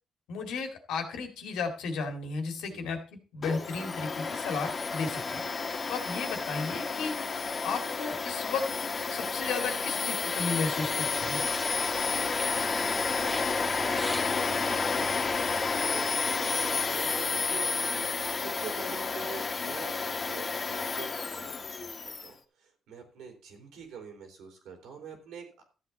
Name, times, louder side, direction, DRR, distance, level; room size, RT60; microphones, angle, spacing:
voice 1, 0.3-3.0 3.3-5.4 5.9-7.2 7.6-8.7 9.1-11.4, left 4 dB, 85° left, 5 dB, 2.1 m, -34 dB
Domestic sounds home sounds, 3.4-22.3, left 4 dB, 35° left, 1.5 m, -31 dB
sound 1, 11.1-16.1, equal, 5° right, 1.2 m, -45 dB
voice 2, 12.5-12.8 13.1-14.5 14.9-18.0 18.4-20.0 20.2-25.6, right 6 dB, 85° right, 4 dB, 3.6 m, -46 dB
13.0 x 8.1 x 4.1 m, 0.34 s
cardioid pair, 90°, 0 cm